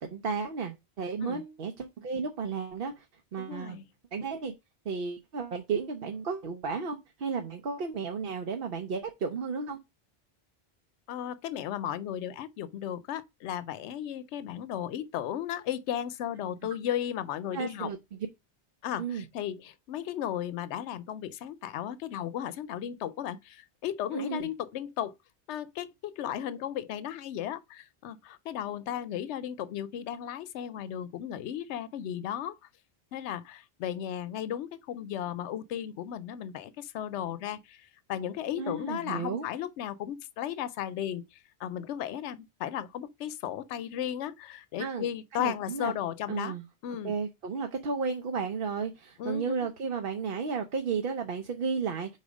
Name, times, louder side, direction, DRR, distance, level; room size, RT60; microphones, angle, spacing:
voice 1, 0.0-3.1 3.3-3.8 4.1-4.5 4.8-9.8 17.5-18.0 19.0-19.2 24.1-24.5 38.6-39.5 44.8-45.1 45.3-45.9 46.3-46.6 47.0-52.2, right 5 dB, 60° right, 0.9 m, -33 dB
voice 2, 3.4-3.8 11.1-17.9 18.8-25.1 25.5-32.6 33.1-46.5 46.8-47.1 49.2-49.6, left 10 dB, 80° left, 0.9 m, -35 dB
4.8 x 4.1 x 5.1 m
omnidirectional pair, 1.2 m